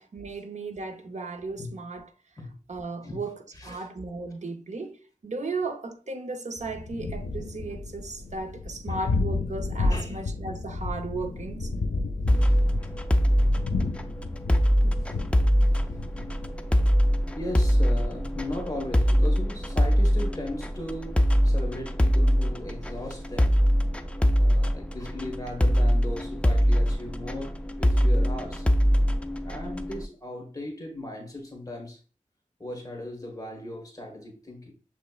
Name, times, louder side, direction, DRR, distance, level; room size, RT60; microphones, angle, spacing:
voice 1, 0.0-2.1 2.7-3.4 3.6-11.7, right 3 dB, 60° right, 0.6 m, -35 dB
voice 2, 3.5-3.9 8.9-9.0 9.9-10.2 12.3-13.0 13.2-13.3 15.0-15.5 15.8-16.0 17.3-23.6 24.3-28.7 29.4-32.0 32.6-34.7, left 1 dB, 25° left, 1.4 m, -38 dB
Thunder, 6.6-21.8, left 3 dB, 85° left, 0.6 m, -33 dB
sound 1, 12.3-30.0, equal, 10° left, 0.4 m, -23 dB
6.7 x 3.1 x 2.4 m
wide cardioid pair, 75°, 14 cm